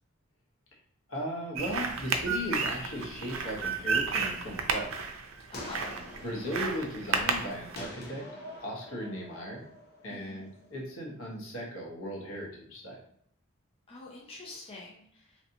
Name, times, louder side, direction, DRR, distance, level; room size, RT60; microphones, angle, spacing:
voice 1, 1.1-4.9 6.2-8.2 8.6-9.6 10.0-13.0, equal, 75° left, -2 dB, 1.0 m, -37 dB
sound 1, 1.6-7.8, right 5 dB, 75° right, 0.4 m, -32 dB
sound 2, 4.9-10.8, equal, 50° left, 0.9 m, -47 dB
voice 2, 5.5-6.0 10.1-10.4 13.9-15.3, left 2 dB, 30° left, -3 dB, 0.5 m, -45 dB
3.1 x 2.7 x 2.6 m, 0.63 s
head